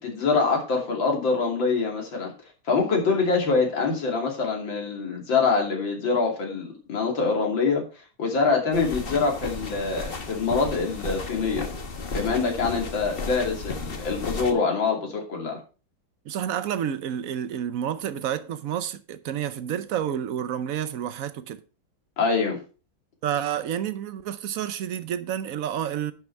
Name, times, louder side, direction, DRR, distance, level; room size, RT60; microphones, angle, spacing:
voice 1, 0.0-2.3 2.7-11.7 12.1-15.6 22.2-22.6, left 4 dB, 70° left, 3.3 m, -25 dB
sound 1, 8.7-14.5, left 4 dB, 35° left, 1.1 m, -34 dB
voice 2, 16.3-21.6 23.2-26.1, right 9 dB, 70° right, 0.8 m, -29 dB
10.5 x 5.9 x 4.5 m
omnidirectional pair, 2.2 m